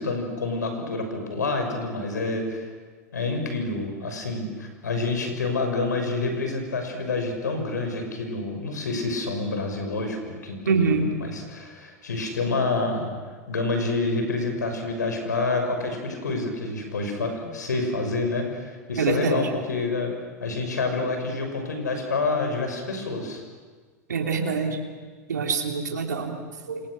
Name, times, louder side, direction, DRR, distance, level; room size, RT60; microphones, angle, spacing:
voice 1, 0.0-2.7 3.1-13.1 13.5-20.1 20.4-23.4, left 3 dB, 90° left, 4 dB, 6.2 m, -28 dB
voice 2, 10.7-11.1 19.0-19.5 24.1-24.8 25.3-26.4 26.7-26.8, right 4 dB, 85° right, 2 dB, 3.1 m, -24 dB
28.0 x 28.0 x 6.5 m, 1.5 s
hypercardioid pair, 95°, 9 cm